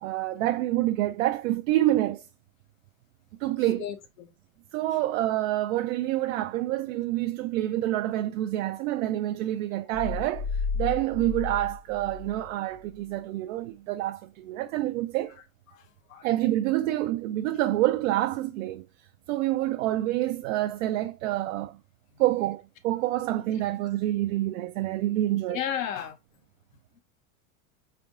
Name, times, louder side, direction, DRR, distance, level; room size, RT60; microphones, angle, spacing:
voice 1, 0.0-2.2 3.4-3.8 4.7-15.4 16.2-18.8 19.3-21.8 22.2-25.6, right 15 dB, 75° right, 0.5 m, -27 dB
voice 2, 3.8-4.3 4.9-5.0 15.7-16.3 25.5-26.2, left 9 dB, 80° left, 1.0 m, -34 dB
sound 1, 9.9-12.5 12.8-13.0, left 5 dB, 55° left, 1.3 m, -33 dB
4.4 x 3.4 x 2.4 m
supercardioid pair, 120°, 40 cm